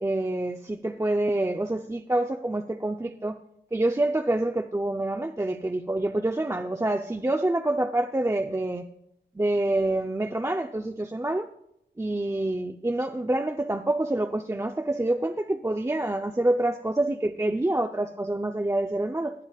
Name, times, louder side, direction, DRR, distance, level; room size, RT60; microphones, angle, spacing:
voice 1, 0.0-3.4 3.7-8.8 9.4-11.5 12.0-19.3, right 1 dB, 15° right, 4 dB, 0.6 m, -27 dB
18.0 x 10.5 x 2.4 m, 0.75 s
cardioid pair, 65°, 19 cm